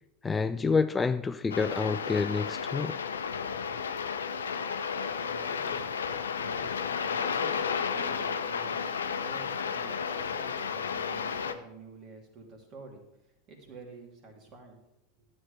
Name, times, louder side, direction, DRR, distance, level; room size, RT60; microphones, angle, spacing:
voice 1, 0.2-3.0, left 4 dB, 15° left, 0.4 m, -28 dB
sound 1, 1.5-11.5, left 6 dB, 80° left, 0.6 m, -32 dB
voice 2, 5.2-5.8 6.4-14.8, right 3 dB, 40° right, 2.9 m, -50 dB
12.5 x 8.0 x 3.4 m
hypercardioid pair, 90°, 0 cm